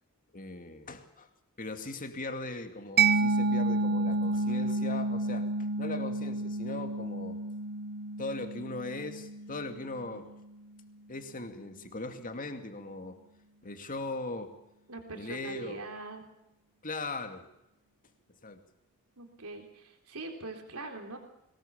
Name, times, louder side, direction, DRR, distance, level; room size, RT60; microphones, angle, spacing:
voice 1, 0.3-1.3 1.6-7.4 8.2-10.3 11.1-13.2 13.6-14.5 15.1-15.8 16.8-17.5 18.4-18.6, left 2 dB, 40° left, 6 dB, 2.4 m, -39 dB
Mallet percussion, 3.0-10.4, right 3 dB, 45° right, 0.9 m, -30 dB
voice 2, 14.9-16.3 19.2-21.2, right 2 dB, 75° right, 4 dB, 3.8 m, -42 dB
22.0 x 20.0 x 7.3 m, 0.87 s
head